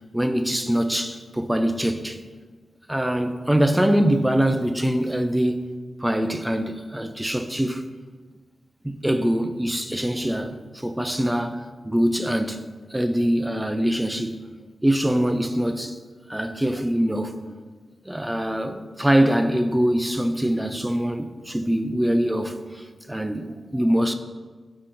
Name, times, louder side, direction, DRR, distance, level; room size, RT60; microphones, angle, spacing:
voice 1, 0.1-2.2 2.9-5.7 6.0-7.8 8.8-12.6 12.9-14.4 14.8-16.0 16.3-17.5 18.1-24.1, equal, 5° right, 0.3 m, -23 dB
10.5 x 3.7 x 2.6 m
wide cardioid pair, 155°, 0 cm